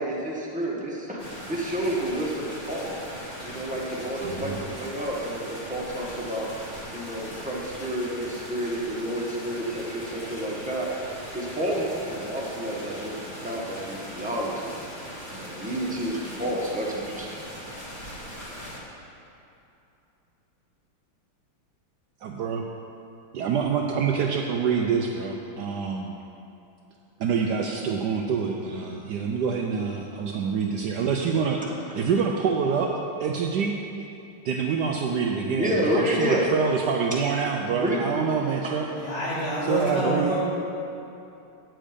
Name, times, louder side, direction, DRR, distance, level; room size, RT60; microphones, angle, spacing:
voice 1, 0.0-2.9 3.4-6.5 6.9-10.9 11.3-14.7 15.3-17.4 31.6-31.7 35.6-36.5 37.8-38.0, equal, 5° right, -5 dB, 0.8 m, -30 dB
sound 1, 1.2-18.8, equal, 25° left, 1.4 m, -40 dB
voice 2, 4.2-4.6 22.2-22.6 23.3-26.1 27.2-31.6 31.9-32.9 33.2-33.8 34.4-38.8 39.7-40.3, right 6 dB, 85° right, 1 dB, 0.9 m, -26 dB
voice 3, 38.9-40.4, equal, 85° left, -9 dB, 3.6 m, -27 dB
9.0 x 7.5 x 5.0 m, 2.8 s
omnidirectional pair, 2.4 m